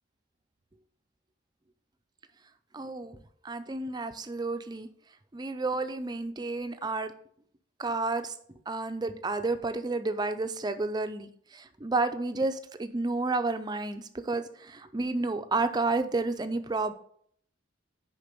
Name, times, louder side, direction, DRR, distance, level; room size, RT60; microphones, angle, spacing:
voice 1, 2.7-3.2 3.4-4.9 5.3-7.1 7.8-8.4 8.7-16.9, right 3 dB, 20° right, 9 dB, 0.5 m, -31 dB
6.7 x 5.2 x 5.2 m, 0.63 s
head